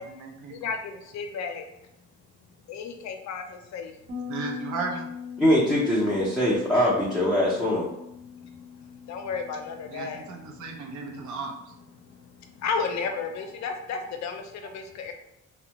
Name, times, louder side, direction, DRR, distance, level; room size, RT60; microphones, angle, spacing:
voice 1, 0.0-0.7 4.3-5.1 9.9-11.5 13.6-13.7, right 4 dB, 75° right, 2 dB, 0.6 m, -35 dB
voice 2, 0.5-1.6 2.7-3.9 8.4-8.5 9.1-10.5 12.6-15.1, left 5 dB, 65° left, 5 dB, 0.5 m, -33 dB
Bass guitar, 4.1-13.4, left 7 dB, 55° right, 1.0 m, -42 dB
voice 3, 5.4-7.9, equal, 5° right, -7 dB, 0.5 m, -22 dB
2.5 x 2.1 x 2.8 m, 0.84 s
cardioid pair, 90°, 30 cm